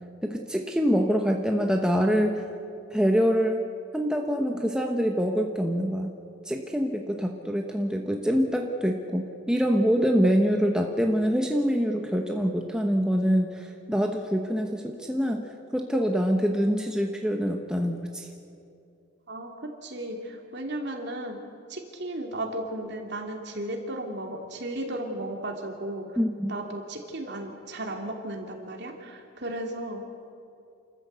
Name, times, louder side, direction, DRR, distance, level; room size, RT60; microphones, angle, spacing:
voice 1, 0.2-2.4 2.9-3.6 3.9-6.1 6.4-18.3 26.2-26.5, equal, 5° right, 2 dB, 1.0 m, -25 dB
voice 2, 19.3-21.4 21.7-26.1 26.5-30.0, right 1 dB, 55° right, 2 dB, 2.9 m, -35 dB
29.0 x 14.0 x 8.1 m, 2.6 s
head